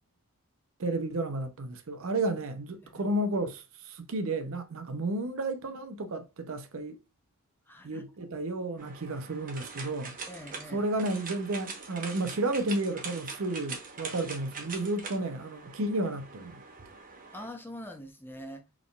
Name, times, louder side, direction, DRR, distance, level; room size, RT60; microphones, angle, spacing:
voice 1, 0.8-7.0 7.8-10.2 10.7-16.6, right 2 dB, 65° right, 0.6 m, -32 dB
voice 2, 7.7-8.0 10.3-10.9 17.3-18.6, equal, 10° left, 0.7 m, -44 dB
sound 1, 8.8-17.5, right 4 dB, 40° right, 1.0 m, -43 dB
4.2 x 3.5 x 2.3 m
head